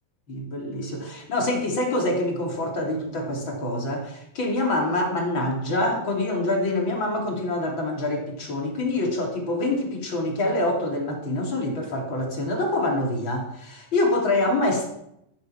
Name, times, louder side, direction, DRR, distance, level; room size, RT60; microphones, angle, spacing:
voice 1, 0.3-14.9, left 1 dB, 35° left, 1 dB, 3.4 m, -26 dB
14.0 x 12.0 x 5.9 m, 0.77 s
omnidirectional pair, 4.1 m